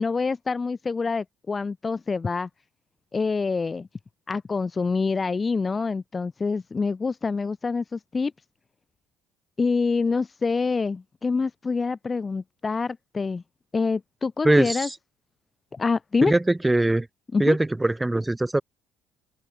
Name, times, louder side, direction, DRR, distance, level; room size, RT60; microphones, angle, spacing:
voice 1, 0.0-2.5 3.1-3.9 4.3-8.3 9.6-13.4 13.7-14.9 15.7-16.3 17.3-17.6, left 4 dB, 30° left, 0.4 m, -26 dB
voice 2, 14.4-14.9 16.2-17.1 17.4-18.6, right 2 dB, 10° right, 1.5 m, -21 dB
hypercardioid pair, 60°, 0 cm